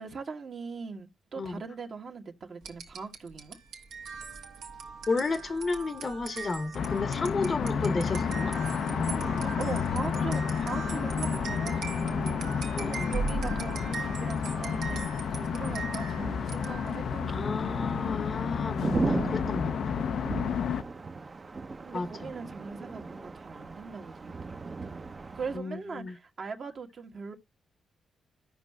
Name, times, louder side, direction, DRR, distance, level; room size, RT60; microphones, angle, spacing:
voice 1, 0.0-3.6 9.4-15.0 15.3-17.5 17.9-18.1 20.3-20.6 21.8-24.7 25.3-27.3, right 5 dB, 55° right, 1.2 m, -40 dB
sound 1, 2.6-17.1, right 4 dB, 80° right, 1.1 m, -40 dB
voice 2, 5.1-8.6 12.7-13.1 17.3-20.0 21.9-22.3 25.5-26.1, left 3 dB, 45° left, 0.8 m, -32 dB
sound 2, 6.7-20.8, left 7 dB, 70° left, 0.4 m, -31 dB
sound 3, 7.6-25.6, right 3 dB, 40° right, 0.6 m, -39 dB
14.0 x 5.3 x 2.2 m
supercardioid pair, 50°, 0 cm